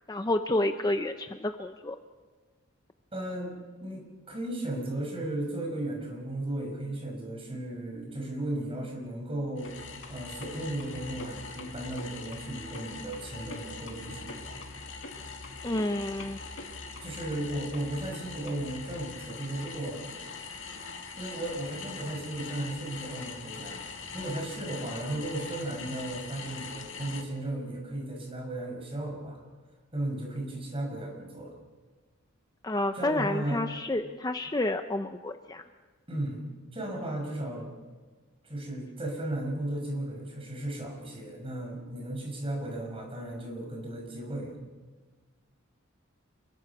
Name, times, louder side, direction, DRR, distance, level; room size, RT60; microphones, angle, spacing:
voice 1, 0.1-2.0 15.6-16.4 32.6-35.6, left 1 dB, 20° left, 7 dB, 0.7 m, -29 dB
voice 2, 3.1-3.5 3.8-9.7 10.1-14.6 17.0-20.1 21.2-29.4 29.9-31.5 32.9-33.6 36.1-36.4 36.7-37.7 38.4-44.6, right 1 dB, 25° right, 1 dB, 6.2 m, -35 dB
sound 1, 9.6-27.2, left 4 dB, 65° left, 2.4 m, -42 dB
27.5 x 22.5 x 6.0 m, 1.4 s
head